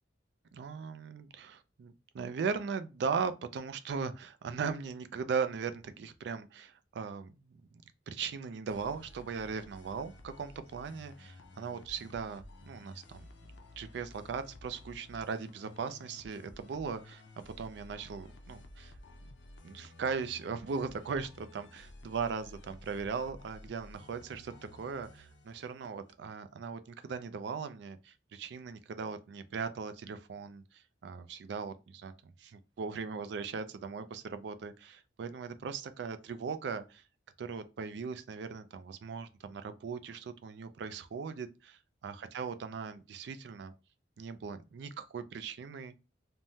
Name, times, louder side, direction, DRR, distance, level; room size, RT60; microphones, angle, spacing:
voice 1, 0.5-13.3 13.8-18.9 19.6-30.6 31.0-37.0 37.4-43.7 44.2-46.0, right 5 dB, 65° right, 0.3 m, -39 dB
sound 1, 8.7-26.1, left 1 dB, 70° left, 0.5 m, -53 dB
3.4 x 2.1 x 2.7 m
head